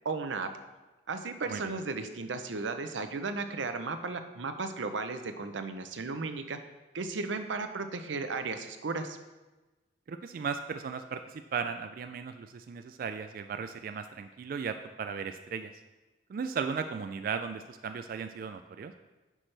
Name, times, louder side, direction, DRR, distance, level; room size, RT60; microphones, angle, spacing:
voice 1, 0.0-0.5 1.1-6.6 6.9-9.2, right 4 dB, 90° right, 8 dB, 0.7 m, -35 dB
voice 2, 10.1-15.7 16.3-18.9, right 6 dB, 50° right, 8 dB, 0.3 m, -36 dB
9.8 x 6.1 x 3.3 m, 1.2 s
head